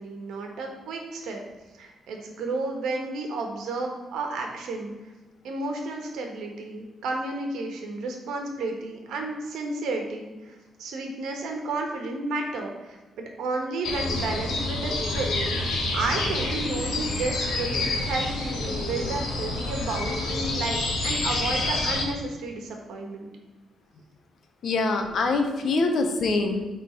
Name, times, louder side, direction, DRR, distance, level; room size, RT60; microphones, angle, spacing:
voice 1, 0.0-1.4 1.8-4.9 5.4-15.3 15.9-23.3, right 3 dB, 80° right, 2 dB, 1.3 m, -32 dB
sound 1, 13.8-22.0, left 2 dB, 70° left, 1.5 m, -28 dB
voice 2, 24.6-26.6, left 3 dB, 45° left, 5 dB, 0.8 m, -24 dB
8.9 x 3.7 x 4.5 m, 1.2 s
cardioid pair, 175°, 0 cm